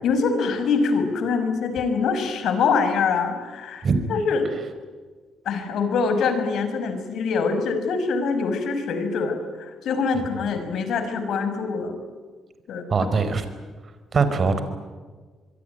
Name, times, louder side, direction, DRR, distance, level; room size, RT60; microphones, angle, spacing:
voice 1, 0.0-4.5 5.5-12.0 12.7-12.8, left 5 dB, 70° left, 8 dB, 5.8 m, -24 dB
voice 2, 12.9-13.4 14.1-14.6, right 4 dB, 45° right, 10 dB, 4.7 m, -21 dB
25.5 x 23.5 x 9.3 m, 1.4 s
cardioid pair, 90°, 0 cm